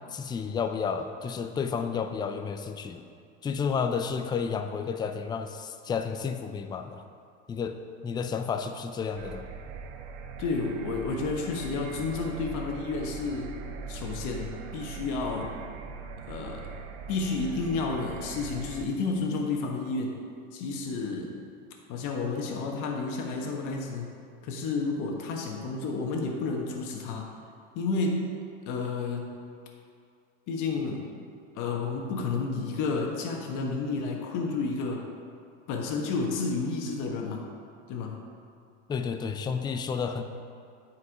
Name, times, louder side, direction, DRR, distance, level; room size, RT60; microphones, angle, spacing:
voice 1, 0.1-3.0 3.4-7.0 7.5-7.8 8.0-9.4 38.9-40.2, left 6 dB, 15° left, 7 dB, 0.3 m, -31 dB
sound 1, 9.2-18.9, right 5 dB, 80° right, 0.8 m, -41 dB
voice 2, 10.4-13.6 13.9-15.5 16.3-16.7 17.1-20.2 20.5-21.4 21.9-24.1 24.4-27.3 27.7-28.3 28.6-29.4 30.5-31.1 31.5-35.1 35.7-37.4 37.9-38.2, left 4 dB, 55° left, 1 dB, 1.4 m, -31 dB
9.1 x 4.7 x 4.7 m, 2.3 s
supercardioid pair, 110°, 36 cm